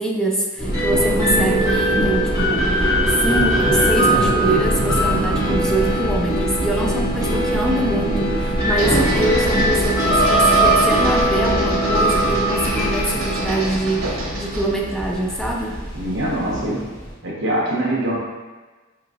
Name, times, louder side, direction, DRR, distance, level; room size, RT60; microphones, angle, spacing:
voice 1, 0.0-15.7, right 1 dB, 5° left, -1 dB, 0.4 m, -24 dB
sound 1, 0.6-17.1, right 1 dB, 20° left, 1.5 m, -20 dB
sound 2, 8.6-14.7, right 1 dB, 90° right, 0.8 m, -30 dB
voice 2, 15.9-16.8 17.2-18.2, right 1 dB, 60° right, -4 dB, 1.0 m, -23 dB
5.0 x 3.0 x 2.5 m, 1.3 s
head